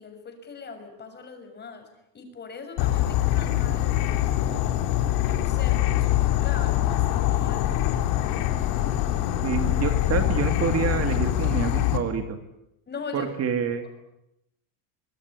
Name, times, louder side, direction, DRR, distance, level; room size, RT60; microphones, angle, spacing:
voice 1, 0.0-1.9 2.1-4.7 5.2-7.9 12.9-13.3, left 4 dB, 25° left, 6 dB, 6.4 m, -40 dB
Insect / Frog, 2.8-12.0, left 13 dB, 75° left, 3.6 m, -24 dB
voice 2, 9.4-12.4 13.1-13.8, right 7 dB, 35° right, 7 dB, 2.5 m, -27 dB
25.0 x 21.5 x 9.9 m, 0.83 s
cardioid pair, 145°, 42 cm